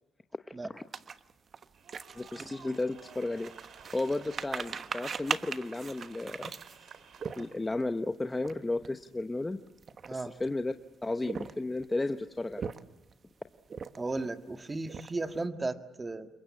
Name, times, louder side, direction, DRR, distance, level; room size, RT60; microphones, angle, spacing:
sound 1, 0.9-7.8 8.3-8.5 8.8-9.0 9.7-10.5 11.1-11.9 12.4-13.1 13.7-14.2 14.6-15.4, right 6 dB, 45° right, 1.2 m, -40 dB
sound 2, 1.7-7.7, right 7 dB, 65° right, 3.1 m, -53 dB
voice 1, 2.1-3.5 3.9-6.5 7.4-9.6 10.1-10.7 11.0-12.7, left 2 dB, 15° left, 8 dB, 0.9 m, -33 dB
voice 2, 14.0-16.3, right 3 dB, 25° right, 7 dB, 1.8 m, -35 dB
28.0 x 23.0 x 8.5 m, 0.98 s
cardioid pair, 90°, 0 cm